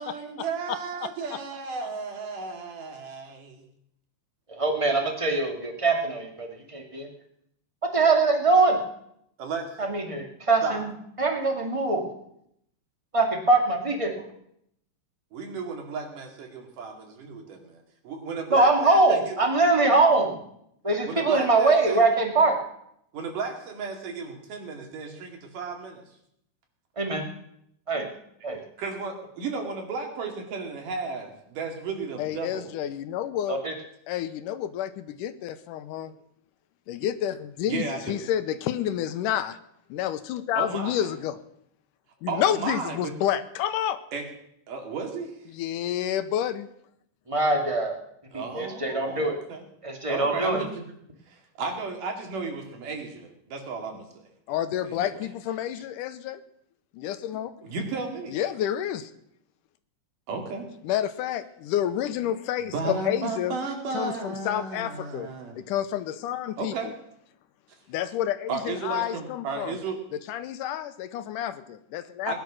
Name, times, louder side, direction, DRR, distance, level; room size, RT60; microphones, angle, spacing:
voice 1, 0.0-3.7 9.4-9.9 10.6-10.8 15.3-17.8 18.0-19.3 21.1-22.0 23.1-26.0 28.8-32.7 37.7-38.2 40.6-41.1 42.3-43.1 44.1-44.2 44.7-45.4 48.3-49.6 50.1-50.7 51.3-54.3 54.8-55.2 57.6-58.4 60.3-60.7 62.6-65.6 66.6-66.9 68.5-70.0 72.3-72.4, right 4 dB, 75° right, 3 dB, 3.9 m, -34 dB
voice 2, 4.5-7.1 7.9-8.8 9.8-10.9 11.2-12.1 13.1-14.3 18.5-20.4 20.8-22.6 27.0-27.2 27.9-28.1 28.4-28.6 33.5-33.7 47.3-48.0 48.3-49.4 49.8-50.6, right 3 dB, 10° right, 2 dB, 1.8 m, -23 dB
voice 3, 32.2-33.6 34.1-36.1 36.9-39.6 39.9-41.4 42.2-44.0 45.5-46.7 54.5-56.4 56.9-57.5 58.3-59.1 60.8-63.5 63.9-65.3 65.6-66.7 67.9-69.8 70.3-72.3, left 11 dB, 80° left, 12 dB, 2.3 m, -29 dB
19.5 x 10.5 x 6.3 m, 0.75 s
omnidirectional pair, 3.8 m